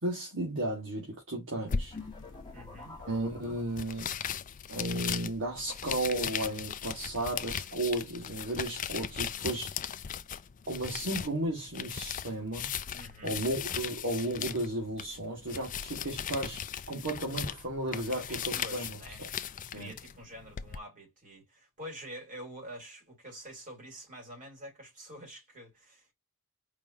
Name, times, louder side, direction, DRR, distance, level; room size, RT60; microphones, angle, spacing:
voice 1, 0.0-1.9 3.1-4.1 4.7-9.7 10.7-12.7 13.2-16.6 16.9-19.0 19.7-19.9, right 1 dB, 60° right, 1.9 m, -34 dB
sound 1, 1.7-20.8, left 8 dB, 35° left, 0.4 m, -38 dB
sound 2, 1.9-4.3, left 3 dB, 20° left, 1.6 m, -48 dB
voice 2, 2.5-3.0 12.9-13.4 17.9-19.2 19.7-26.1, equal, 35° right, 3.4 m, -47 dB
4.8 x 3.6 x 2.8 m
head